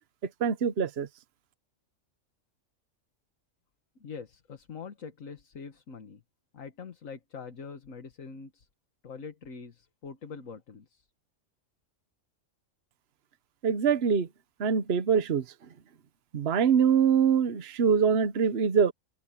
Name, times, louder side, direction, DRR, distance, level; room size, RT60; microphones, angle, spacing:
voice 1, 0.4-1.1 13.6-14.3 14.6-15.4 16.3-18.9, right 7 dB, 55° right, 1.2 m, -24 dB
voice 2, 4.0-6.2 6.5-8.7 9.0-11.1, left 5 dB, 80° left, 1.9 m, -44 dB
omnidirectional pair, 1.4 m